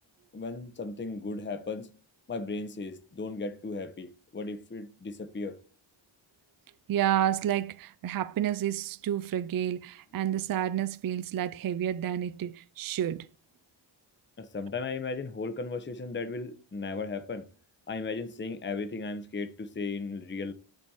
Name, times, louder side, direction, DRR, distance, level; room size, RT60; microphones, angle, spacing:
voice 1, 0.3-1.9 2.3-5.6 14.4-17.5 17.9-20.5, left 3 dB, 25° left, 0.8 m, -36 dB
voice 2, 6.9-13.3, right 11 dB, 50° right, 0.4 m, -30 dB
10.5 x 4.2 x 4.7 m
wide cardioid pair, 105°, 47 cm